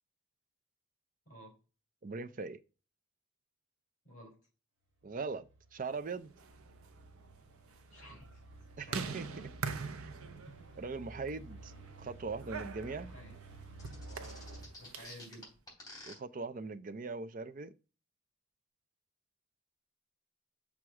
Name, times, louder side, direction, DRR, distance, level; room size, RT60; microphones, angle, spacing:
voice 1, 2.0-2.6 5.0-6.3 8.8-9.3 10.0-10.1 10.8-11.7 12.0-13.1 16.1-17.7, right 4 dB, 40° right, 0.4 m, -40 dB
voice 2, 4.0-4.4 7.9-8.4 8.8-9.5 10.4-10.7 11.1-11.2 12.9-13.4 14.8-15.5, equal, 35° left, 3.8 m, -53 dB
sound 1, 5.0-14.7, right 2 dB, 60° right, 1.6 m, -53 dB
sound 2, 6.2-15.3, right 5 dB, 80° right, 0.7 m, -45 dB
sound 3, 13.8-16.1, left 2 dB, 15° left, 3.1 m, -50 dB
6.3 x 3.6 x 5.8 m
head